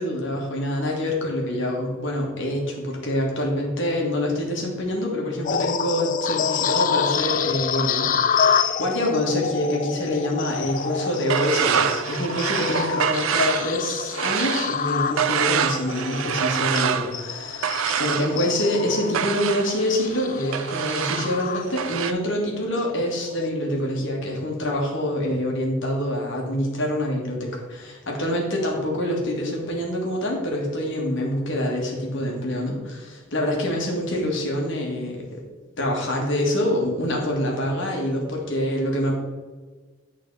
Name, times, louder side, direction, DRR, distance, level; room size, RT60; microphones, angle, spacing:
voice 1, 0.0-35.4 35.8-39.1, left 1 dB, 65° left, -1 dB, 1.7 m, -26 dB
sound 1, 5.4-22.1 22.6-22.8 23.3-23.5, left 7 dB, 40° left, 0.3 m, -28 dB
sound 2, 10.5-22.1, right 8 dB, 85° right, 0.4 m, -27 dB
8.9 x 4.0 x 4.0 m, 1.4 s
head